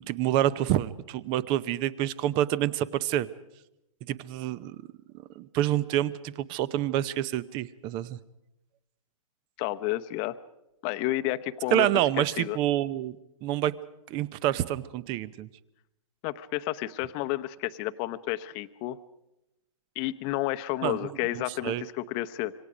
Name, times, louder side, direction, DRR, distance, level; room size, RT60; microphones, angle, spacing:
voice 1, 0.0-3.3 4.1-4.8 5.4-8.2 11.7-13.1 13.4-13.7 14.1-15.5 20.8-21.0 21.3-21.8, right 13 dB, 25° right, 19 dB, 0.7 m, -27 dB
voice 2, 9.6-10.4 10.8-11.9 12.4-12.6 16.2-19.0 19.9-22.5, left 16 dB, 30° left, 11 dB, 0.9 m, -31 dB
26.5 x 25.0 x 5.1 m, 0.90 s
hypercardioid pair, 140°, 18 cm